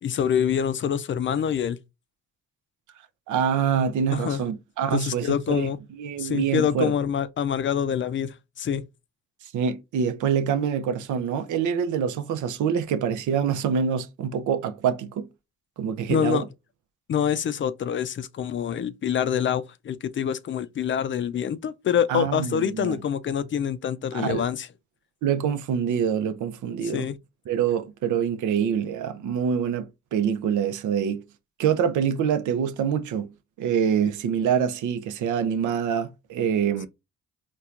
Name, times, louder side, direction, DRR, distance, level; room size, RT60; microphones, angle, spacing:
voice 1, 0.0-1.8 4.1-4.4 4.9-5.8 6.2-8.9 16.1-16.4 17.1-24.7 26.8-27.2, left 8 dB, 40° left, 0.4 m, -26 dB
voice 2, 3.3-5.7 6.0-6.9 9.4-15.3 15.8-16.5 22.1-23.0 24.1-24.4 25.2-27.1 27.5-31.2 31.6-33.3 33.6-36.9, right 7 dB, 75° right, 0.6 m, -25 dB
4.3 x 2.2 x 2.4 m
cardioid pair, 90°, 30 cm